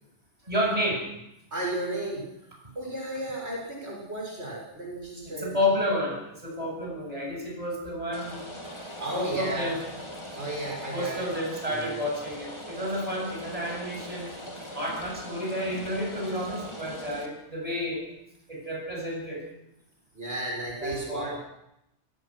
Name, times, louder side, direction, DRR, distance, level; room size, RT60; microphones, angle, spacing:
voice 1, 0.5-1.0 5.2-8.4 9.1-9.8 10.9-14.4 14.7-18.0 18.5-19.4 20.8-21.4, left 1 dB, 30° right, -1 dB, 8.2 m, -30 dB
voice 2, 1.5-2.3 2.8-5.8 8.6-9.7 10.3-11.3 11.7-12.0 15.5-15.6 20.1-21.4, right 1 dB, 65° right, -2 dB, 7.2 m, -34 dB
Rain, 8.1-17.3, equal, 25° left, 3.4 m, -41 dB
28.0 x 19.0 x 6.4 m, 0.84 s
omnidirectional pair, 1.2 m